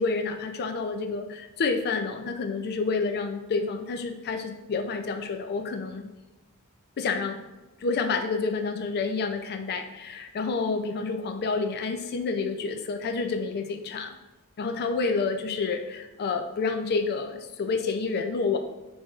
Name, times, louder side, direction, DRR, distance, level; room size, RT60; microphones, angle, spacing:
voice 1, 0.0-6.1 7.0-7.5 7.8-14.1 14.6-18.6, left 4 dB, 45° left, 6 dB, 0.4 m, -29 dB
6.1 x 2.6 x 2.4 m, 1.1 s
head